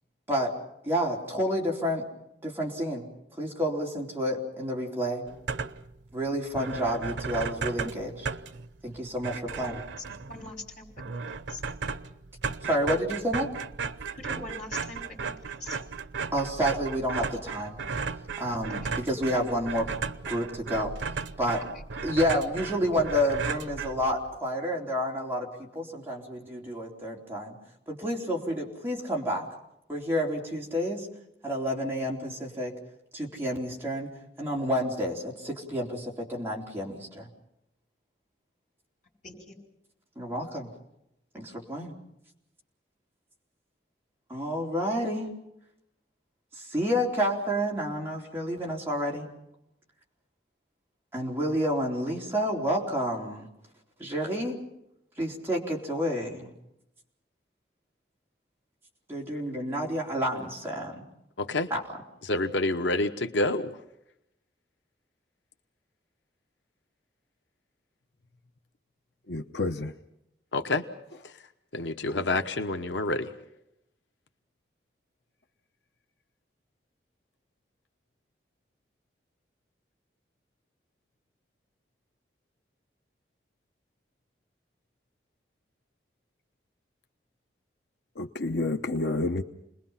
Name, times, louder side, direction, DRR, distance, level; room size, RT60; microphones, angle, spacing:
voice 1, 0.8-2.0 2.4-3.1 3.4-5.2 6.1-8.3 8.8-9.8 12.6-13.5 16.3-17.8 18.4-19.9 20.3-20.9 21.4-21.6 22.0-27.6 27.9-29.5 29.9-31.1 31.4-32.7 33.1-34.1 34.4-37.3 40.2-40.7 41.3-41.9 44.3-45.3 46.5-49.3 51.1-53.5 54.0-54.6 55.2-56.5 59.1-61.0 61.7-61.8, equal, 10° right, 3.8 m, -29 dB
sound 1, 5.3-6.0 6.3-6.4 6.5-24.4, right 5 dB, 90° right, 0.8 m, -35 dB
voice 2, 10.3-10.8 11.5-11.6 14.1-15.0 15.6-15.8 21.7-21.8 39.2-39.5, left 2 dB, 40° left, 5.7 m, -41 dB
voice 3, 61.4-61.7 62.3-63.8 70.5-70.8 71.2-71.3 71.7-73.3, left 2 dB, 90° left, 1.1 m, -28 dB
voice 4, 69.3-69.9 72.1-72.2 88.2-89.4, left 2 dB, 70° left, 0.9 m, -29 dB
29.0 x 21.0 x 5.7 m
head